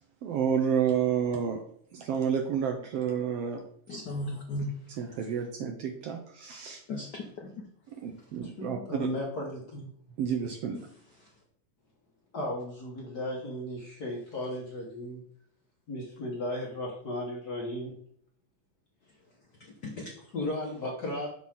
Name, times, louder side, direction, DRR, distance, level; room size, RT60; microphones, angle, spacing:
voice 1, 0.2-1.6 1.9-3.7 5.0-6.8 8.0-8.8 10.2-10.8, right 7 dB, 75° right, 1.5 m, -30 dB
voice 2, 3.9-4.8 6.9-7.7 11.2-11.3 19.6-20.1, left 1 dB, 75° left, 0.9 m, -36 dB
voice 3, 8.4-9.9 12.3-15.2 15.9-17.9 20.3-21.3, left 1 dB, 45° left, 1.3 m, -35 dB
6.1 x 5.9 x 3.6 m
omnidirectional pair, 3.3 m